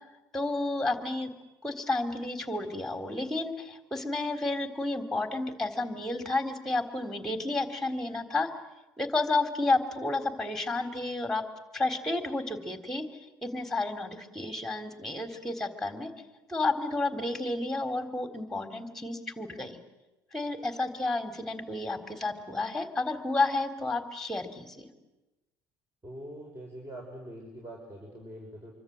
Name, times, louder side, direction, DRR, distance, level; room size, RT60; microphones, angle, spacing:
voice 1, 0.3-1.3 1.6-8.5 9.0-11.4 11.7-13.1 13.4-16.1 16.5-19.8 20.3-24.9, left 2 dB, 5° left, 6 dB, 3.8 m, -31 dB
voice 2, 26.0-28.7, right 1 dB, 20° right, 0 dB, 6.4 m, -43 dB
26.0 x 24.5 x 8.0 m, 1.0 s
hypercardioid pair, 60°, 11 cm